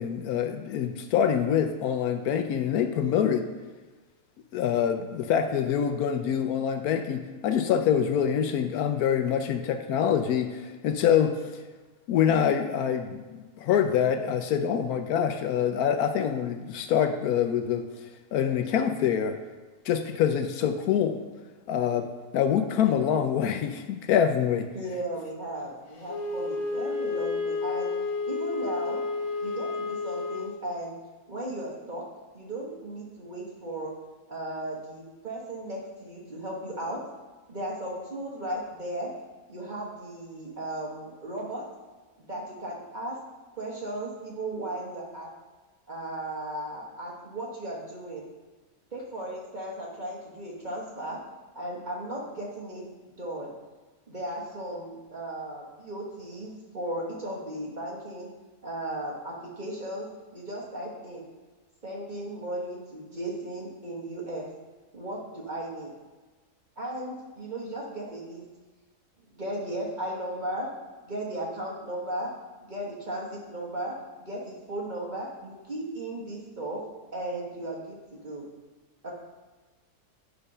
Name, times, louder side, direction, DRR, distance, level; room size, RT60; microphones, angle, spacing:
voice 1, 0.0-3.4 4.5-11.4 12.1-17.8 18.3-19.4 19.9-21.2 21.7-24.7, left 8 dB, 75° left, 7 dB, 1.0 m, -25 dB
voice 2, 24.7-27.9 28.2-29.0 29.4-30.9 31.3-32.0 32.3-33.9 34.3-37.0 37.5-39.1 39.5-41.6 42.2-43.2 43.6-45.3 45.9-48.2 48.9-51.2 51.5-52.9 53.2-53.5 54.1-58.3 58.6-60.1 60.3-61.2 61.8-64.5 64.9-65.9 66.8-68.4 69.4-70.7 71.0-72.3 72.6-76.8 77.1-78.4 79.0-79.1, right 1 dB, 30° right, -4 dB, 1.4 m, -36 dB
Wind instrument woodwind instrument, 26.1-30.6, left 3 dB, 35° left, 0.6 m, -31 dB
9.8 x 3.4 x 5.4 m, 1.3 s
omnidirectional pair, 1.7 m